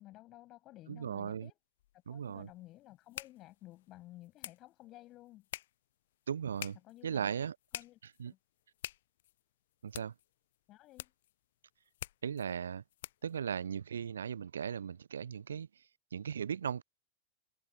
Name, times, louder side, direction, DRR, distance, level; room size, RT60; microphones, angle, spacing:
voice 1, 0.0-1.6 2.1-5.5 6.8-7.3 7.7-8.0 8.3-8.4 10.7-11.1, left 16 dB, 35° left, 7.3 m, -54 dB
voice 2, 0.9-1.5 2.1-2.5 6.3-6.8 7.0-7.5 8.2-8.3 9.8-10.1 12.2-12.8 13.2-15.7 16.1-16.8, right 7 dB, 70° right, 0.4 m, -37 dB
sound 1, 1.8-13.4, left 14 dB, 55° left, 0.5 m, -50 dB
figure-of-eight pair, 90°, 0 cm